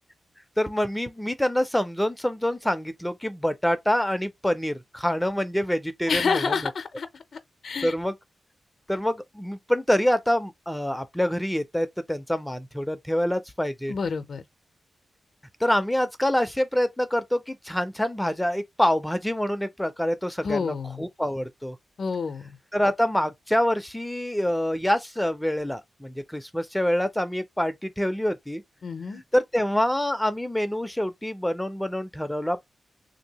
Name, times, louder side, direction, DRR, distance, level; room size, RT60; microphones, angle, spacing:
voice 1, 0.6-6.4 7.8-8.1 8.9-13.9 15.6-21.8 22.7-28.6 29.1-32.6, equal, 5° left, 0.4 m, -26 dB
voice 2, 6.1-7.2 7.6-7.9 13.9-14.4 20.4-21.1 22.0-22.6 28.8-29.2, left 5 dB, 60° left, 0.5 m, -28 dB
3.3 x 2.6 x 2.8 m
wide cardioid pair, 125°, 0 cm